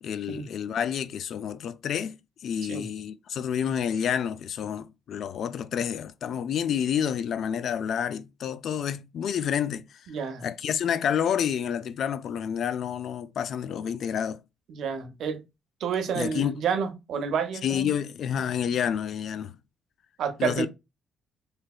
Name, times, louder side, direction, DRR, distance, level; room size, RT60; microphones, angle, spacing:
voice 1, 0.0-9.9 10.4-14.4 16.1-16.6 17.6-19.5 20.4-20.7, left 8 dB, 65° left, 0.3 m, -29 dB
voice 2, 10.1-10.5 14.7-15.4 15.8-17.9 20.2-20.7, right 6 dB, 75° right, 0.7 m, -29 dB
3.3 x 2.8 x 2.3 m
cardioid pair, 90°, 0 cm